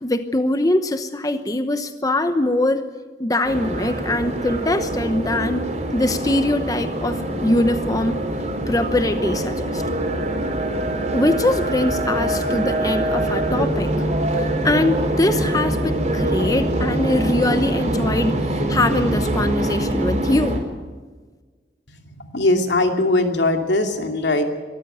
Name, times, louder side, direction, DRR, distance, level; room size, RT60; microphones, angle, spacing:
voice 1, 0.0-2.8 3.2-5.7 5.9-8.2 8.7-9.8 11.1-13.9 14.6-20.6, left 1 dB, 20° left, 9 dB, 0.9 m, -22 dB
sound 1, 3.4-20.6, right 1 dB, 40° right, 4.4 m, -24 dB
voice 2, 22.0-24.4, left 2 dB, 80° left, 4 dB, 2.5 m, -20 dB
23.5 x 14.0 x 9.2 m, 1.4 s
head